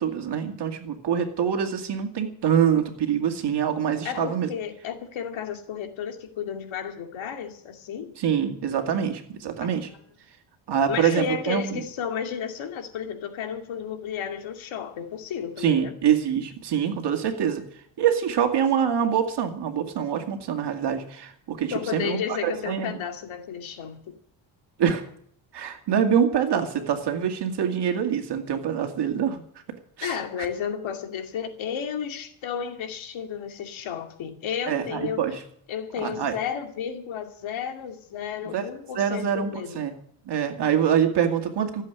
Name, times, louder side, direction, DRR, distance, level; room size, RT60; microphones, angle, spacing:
voice 1, 0.0-4.5 8.2-9.9 10.7-11.8 15.6-17.7 18.0-23.0 24.8-25.0 25.5-29.4 30.0-30.2 34.7-35.4 36.0-36.3 38.5-38.6 39.0-39.9 40.3-41.8, right 8 dB, 55° right, 5 dB, 2.3 m, -25 dB
voice 2, 4.0-8.1 9.6-9.7 10.9-15.9 21.7-24.1 30.0-35.2 35.7-39.8, left 8 dB, 75° left, 4 dB, 2.5 m, -32 dB
15.0 x 7.8 x 9.5 m, 0.64 s
cardioid pair, 115°, 48 cm